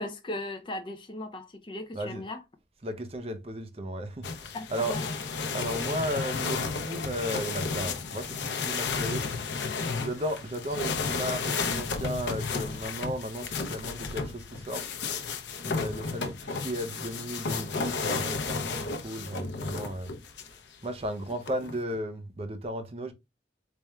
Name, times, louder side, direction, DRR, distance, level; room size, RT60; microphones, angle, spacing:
voice 1, 0.0-2.4 4.5-5.2, left 1 dB, 30° left, 0.5 m, -37 dB
voice 2, 1.9-2.2 2.8-5.0 5.5-9.3 9.5-14.8 15.6-20.1 20.8-23.1, equal, 35° right, 0.5 m, -35 dB
sound 1, 4.2-20.6 21.3-22.0, left 4 dB, 90° left, 0.6 m, -33 dB
4.2 x 3.4 x 2.3 m
head